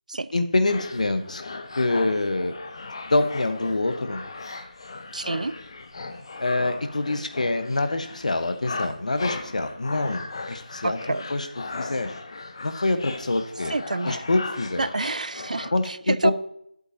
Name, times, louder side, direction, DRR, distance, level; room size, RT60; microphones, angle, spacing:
voice 1, 0.3-1.4 1.8-2.6 3.1-4.2 6.4-11.0 11.3-11.5 11.8-12.1 12.6-13.7 14.0-14.9 15.7-16.3, left 2 dB, 60° left, 8 dB, 1.0 m, -25 dB
sound 1, 0.7-15.7, left 3 dB, 35° left, 0.7 m, -37 dB
voice 2, 5.1-5.5 10.8-11.2 13.7-14.2 14.8-16.3, right 3 dB, 65° right, 17 dB, 0.4 m, -28 dB
10.5 x 7.9 x 2.7 m, 0.72 s
figure-of-eight pair, 165°, 4 cm